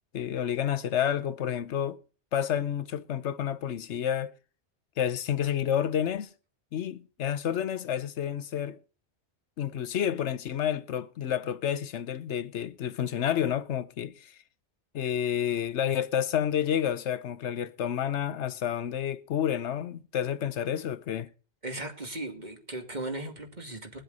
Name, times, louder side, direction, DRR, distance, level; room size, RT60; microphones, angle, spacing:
voice 1, 0.1-2.0 2.3-4.3 5.0-6.3 6.7-8.8 9.6-14.3 14.9-21.3, left 9 dB, 80° left, 1.0 m, -29 dB
voice 2, 21.6-24.0, right 1 dB, 40° right, 2.4 m, -37 dB
21.0 x 7.7 x 4.0 m
omnidirectional pair, 1.2 m